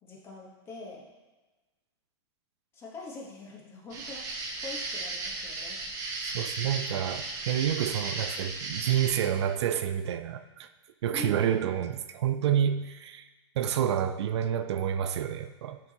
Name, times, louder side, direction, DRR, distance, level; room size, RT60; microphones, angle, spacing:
voice 1, 0.0-1.1 2.7-5.8 11.1-11.5, left 3 dB, 15° left, -2 dB, 1.2 m, -44 dB
sound 1, 3.9-9.1, right 3 dB, 25° right, 0.9 m, -35 dB
voice 2, 6.3-10.7 11.0-13.2 13.6-15.8, right 9 dB, 80° right, 10 dB, 0.5 m, -29 dB
9.9 x 4.6 x 2.9 m, 1.2 s
supercardioid pair, 160°, 14 cm